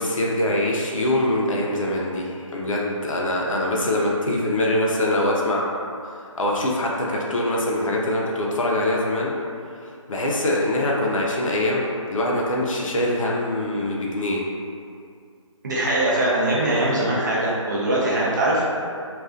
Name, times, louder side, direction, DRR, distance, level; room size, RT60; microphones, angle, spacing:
voice 1, 0.0-5.7 6.4-9.3 10.1-14.4, left 1 dB, 80° left, -2 dB, 0.5 m, -23 dB
voice 2, 15.6-18.7, right 1 dB, 35° right, -6 dB, 0.5 m, -22 dB
2.4 x 2.3 x 2.4 m, 2.3 s
figure-of-eight pair, 165°, 17 cm